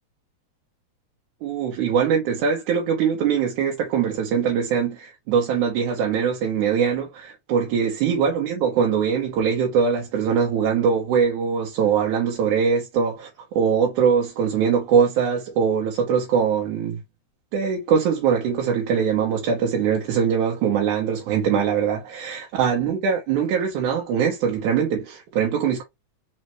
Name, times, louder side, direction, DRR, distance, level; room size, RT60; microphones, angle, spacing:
voice 1, 1.4-17.0 17.5-25.8, right 7 dB, 85° right, 2.5 m, -22 dB
5.4 x 3.2 x 3.1 m
omnidirectional pair, 3.5 m